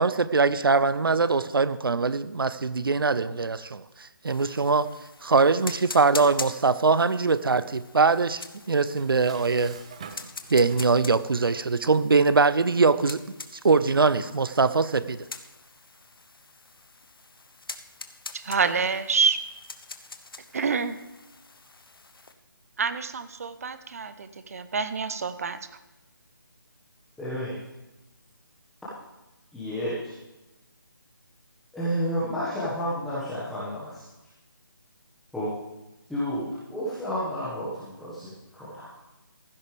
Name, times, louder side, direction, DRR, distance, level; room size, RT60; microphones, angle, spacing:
voice 1, 0.0-3.8 4.2-4.9 5.2-9.8 10.5-13.2 13.6-15.2, right 4 dB, 80° right, 15 dB, 0.6 m, -22 dB
sound 1, 4.3-22.3, left 3 dB, 80° left, 1.1 m, -44 dB
Dishes pots and pans, 8.8-11.3, right 6 dB, 15° right, 0.5 m, -45 dB
voice 2, 18.3-19.4 20.5-21.0 22.8-25.8, right 5 dB, 40° right, 12 dB, 0.8 m, -27 dB
voice 3, 27.2-27.6 29.5-30.1 31.7-34.0 35.3-35.5 36.1-38.9, equal, ahead, -12 dB, 1.6 m, -31 dB
15.0 x 12.0 x 3.4 m, 1.0 s
figure-of-eight pair, 165°, 12 cm